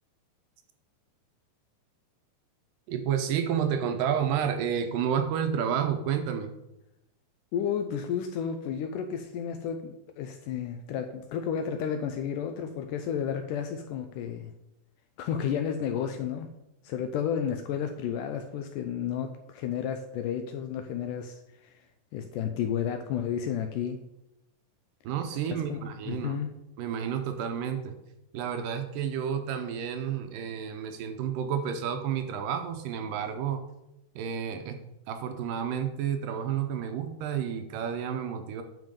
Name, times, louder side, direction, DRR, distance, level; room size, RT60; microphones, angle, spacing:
voice 1, 2.9-6.5 25.0-26.4 26.8-27.9 28.3-33.6 34.2-34.8 35.1-38.6, right 8 dB, 80° right, 7 dB, 2.2 m, -30 dB
voice 2, 7.5-14.5 15.2-16.5 16.8-21.8 22.1-24.0 25.5-25.8 26.1-26.5, left 8 dB, 80° left, 6 dB, 1.9 m, -32 dB
9.2 x 6.0 x 5.2 m, 0.88 s
omnidirectional pair, 4.3 m